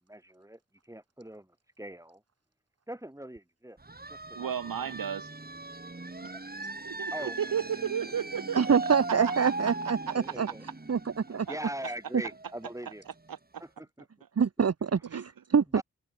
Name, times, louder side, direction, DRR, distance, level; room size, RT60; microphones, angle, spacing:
voice 1, 0.1-2.2 2.9-3.8 4.1-5.0 6.3-6.4 7.1-7.5 8.1-8.2 10.1-10.6 11.5-13.0 13.6-14.1 15.7-15.8, right 1 dB, 10° right, 3.2 m, -42 dB
sound 1, 3.8-13.3, right 2 dB, 25° right, 2.6 m, -39 dB
voice 2, 4.3-5.3 6.2-6.3 6.8-9.9 11.5-11.6 13.3-13.6 15.1-15.3, right 8 dB, 80° right, 0.9 m, -34 dB
voice 3, 8.6-10.0 10.4-10.5 10.9-11.0 11.3-11.5 14.4-15.8, right 6 dB, 45° right, 0.8 m, -25 dB
cardioid pair, 50°, 34 cm